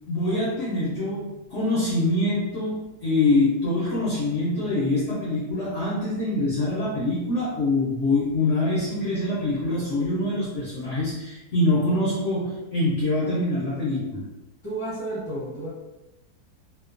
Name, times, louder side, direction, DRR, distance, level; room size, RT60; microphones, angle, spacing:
voice 1, 0.1-14.3, left 2 dB, 65° left, -7 dB, 0.8 m, -24 dB
voice 2, 14.6-15.7, right 1 dB, 25° right, -10 dB, 0.7 m, -31 dB
2.8 x 2.0 x 2.5 m, 0.95 s
omnidirectional pair, 1.8 m